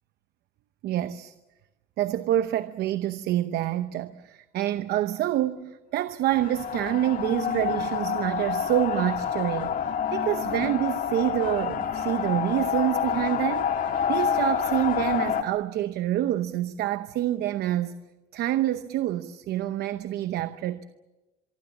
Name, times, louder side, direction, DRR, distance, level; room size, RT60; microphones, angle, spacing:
voice 1, 0.8-1.3 2.0-18.0 18.3-20.9, right 13 dB, 75° right, 0.9 m, -27 dB
sound 1, 6.3-15.4, left 7 dB, 55° left, 1.8 m, -28 dB
24.5 x 24.0 x 7.2 m
cardioid pair, 110°, 17 cm